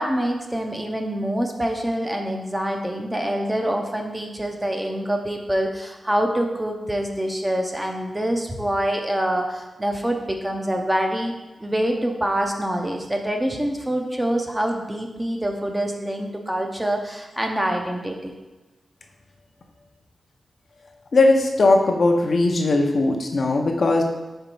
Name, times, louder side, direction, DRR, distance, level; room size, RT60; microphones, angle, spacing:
voice 1, 0.0-11.3 11.6-18.3, right 1 dB, 10° right, 2 dB, 0.6 m, -25 dB
voice 2, 21.1-24.0, left 2 dB, 50° left, 2 dB, 0.7 m, -18 dB
4.4 x 4.0 x 5.3 m, 1.1 s
wide cardioid pair, 130°, 0 cm